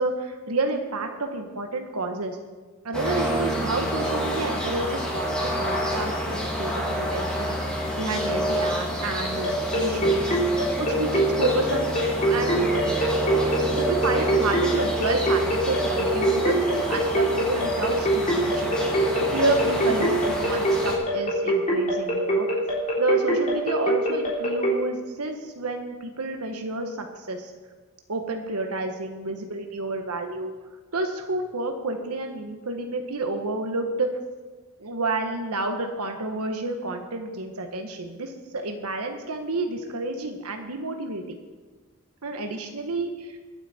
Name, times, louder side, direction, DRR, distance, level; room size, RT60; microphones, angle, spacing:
voice 1, 0.0-2.4 2.8-9.5 9.7-10.3 10.8-13.0 13.8-22.6 23.0-27.5 28.1-30.5 30.9-34.1 34.8-41.4 42.2-43.4, right 2 dB, 85° right, 4 dB, 1.3 m, -30 dB
sound 1, 2.9-20.9, equal, 5° left, 2.7 m, -28 dB
sound 2, 9.4-24.7, right 1 dB, 35° left, 3.8 m, -23 dB
22.5 x 8.2 x 4.3 m, 1.4 s
head